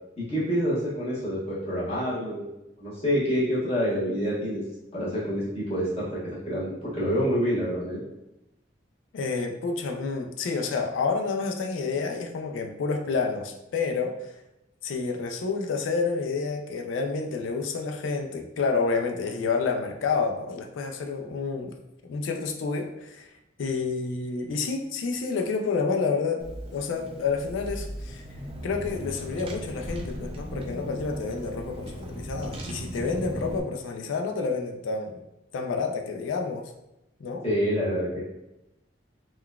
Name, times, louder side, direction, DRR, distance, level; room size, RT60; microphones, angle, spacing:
voice 1, 0.2-2.4 2.8-4.6 4.9-8.0 37.4-38.2, equal, 35° left, -10 dB, 1.1 m, -27 dB
voice 2, 9.1-14.2 14.8-21.7 22.0-23.3 23.6-26.4 26.7-28.2 28.6-35.2 35.5-36.7 37.2-37.5, left 4 dB, 80° left, 4 dB, 0.4 m, -29 dB
Car / Engine, 26.4-33.6, equal, 30° right, 0.4 m, -37 dB
3.7 x 2.2 x 2.3 m, 0.90 s
head